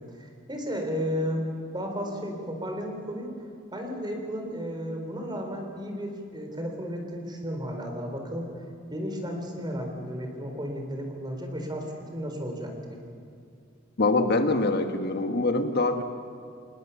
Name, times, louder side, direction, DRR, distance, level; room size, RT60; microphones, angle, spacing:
voice 1, 0.0-3.3 3.7-8.5 8.9-13.0, equal, 25° right, 3 dB, 4.0 m, -33 dB
voice 2, 14.0-16.0, left 2 dB, 55° left, 6 dB, 1.4 m, -24 dB
27.5 x 19.5 x 7.0 m, 2.4 s
head